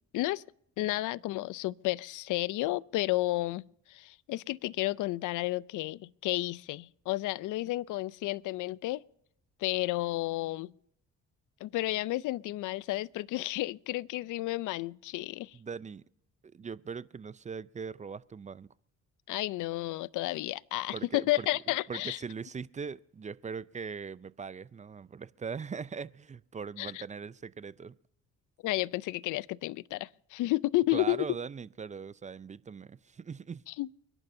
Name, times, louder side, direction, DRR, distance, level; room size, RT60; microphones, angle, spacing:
voice 1, 0.8-9.0 9.6-10.7 11.6-15.6 19.3-22.2 26.8-27.0 28.6-31.3 33.7-33.9, left 18 dB, 80° left, 0.5 m, -32 dB
voice 2, 15.5-16.0 16.4-18.7 20.9-21.5 21.9-28.0 30.9-33.6, right 5 dB, 25° right, 0.4 m, -40 dB
29.0 x 11.0 x 2.7 m
cardioid pair, 90°, 30 cm